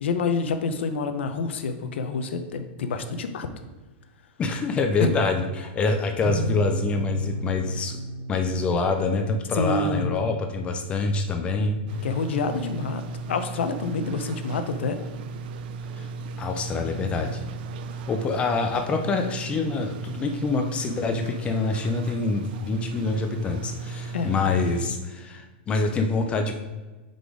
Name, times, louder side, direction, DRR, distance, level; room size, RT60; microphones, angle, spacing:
voice 1, 0.0-3.5 5.0-5.1 9.5-10.1 12.0-15.0 24.1-24.3, left 4 dB, 90° left, 8 dB, 0.7 m, -27 dB
voice 2, 4.4-8.0 8.3-11.8 15.9-16.1 16.4-17.4 18.1-26.5, left 3 dB, 20° left, 5 dB, 0.4 m, -26 dB
sound 1, 6.2-12.6, right 1 dB, ahead, 1.9 m, -35 dB
sound 2, 11.9-24.9, right 4 dB, 55° right, 0.4 m, -36 dB
5.0 x 4.0 x 4.8 m, 1.2 s
supercardioid pair, 155°, 6 cm